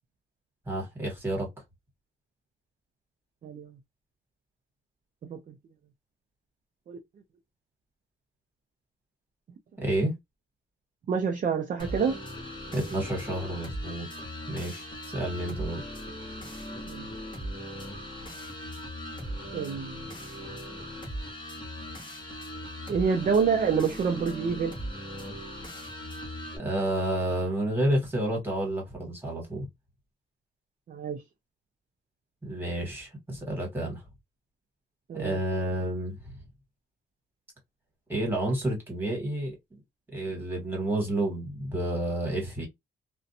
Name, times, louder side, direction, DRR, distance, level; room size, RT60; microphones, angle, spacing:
voice 1, 0.7-1.5 9.8-10.1 12.7-14.1 14.5-15.8 26.5-29.7 32.4-34.0 35.1-36.4 38.1-39.5 40.1-42.7, right 1 dB, 10° right, 1.4 m, -30 dB
voice 2, 3.4-3.7 5.2-5.5 6.9-7.0 11.1-12.2 16.9-17.1 19.5-20.0 22.9-24.8 30.9-31.2 35.1-35.4, right 6 dB, 40° right, 0.4 m, -27 dB
sound 1, 11.8-26.6, equal, 25° left, 0.9 m, -39 dB
2.5 x 2.1 x 2.7 m
cardioid pair, 140°, 20 cm